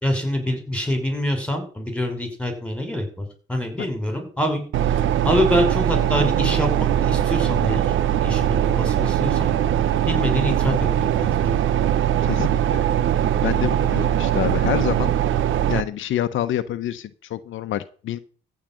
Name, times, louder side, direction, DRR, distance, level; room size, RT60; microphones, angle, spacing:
voice 1, 0.0-9.5 10.1-11.6, left 1 dB, 5° left, 6 dB, 5.5 m, -26 dB
sound 1, 4.7-15.8, right 10 dB, 80° right, 1.1 m, -21 dB
voice 2, 12.2-12.8 13.4-15.1 15.7-18.2, left 12 dB, 80° left, 10 dB, 1.0 m, -27 dB
14.5 x 5.2 x 9.2 m, 0.41 s
cardioid pair, 90°, 20 cm